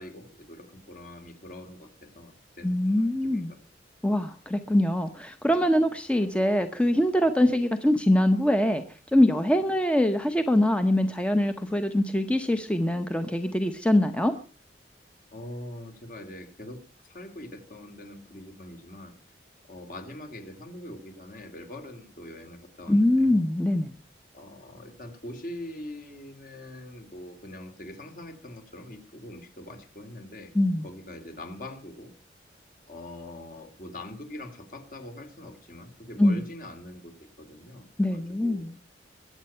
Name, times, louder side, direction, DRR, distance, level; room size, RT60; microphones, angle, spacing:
voice 1, 0.0-3.6 9.7-9.8 15.3-19.2 19.7-23.4 24.3-30.5 30.8-32.1 32.9-38.7, left 1 dB, 50° left, 6 dB, 2.8 m, -43 dB
voice 2, 2.6-3.5 4.0-8.8 9.1-14.3 22.9-23.9 30.5-30.9 36.2-36.4 38.0-38.7, left 1 dB, 5° left, 8 dB, 0.8 m, -23 dB
22.0 x 8.9 x 5.6 m, 0.38 s
head